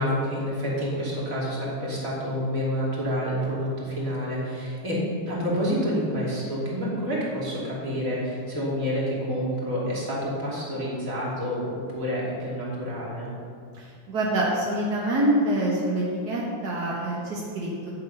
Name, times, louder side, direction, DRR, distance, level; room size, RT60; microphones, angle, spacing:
voice 1, 0.0-13.3, equal, 25° right, -6 dB, 2.5 m, -28 dB
voice 2, 13.7-17.9, right 1 dB, 55° right, -4 dB, 1.1 m, -26 dB
10.5 x 7.6 x 5.4 m, 2.3 s
omnidirectional pair, 3.8 m